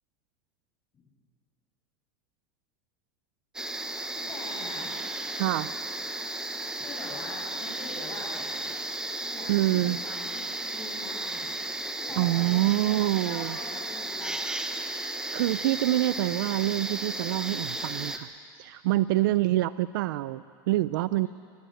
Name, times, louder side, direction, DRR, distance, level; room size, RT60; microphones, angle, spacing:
sound 1, 3.5-18.2, right 2 dB, 5° right, 1.1 m, -34 dB
voice 1, 4.3-4.9 6.8-8.7 9.3-11.5 11.9-14.3 19.2-19.3 21.2-21.3, left 2 dB, 20° left, -5 dB, 7.2 m, -43 dB
voice 2, 5.3-5.7 9.5-10.0 12.2-13.6 15.3-18.3 18.6-21.3, right 16 dB, 85° right, 15 dB, 0.5 m, -26 dB
23.5 x 20.0 x 7.9 m, 2.2 s
supercardioid pair, 145°, 11 cm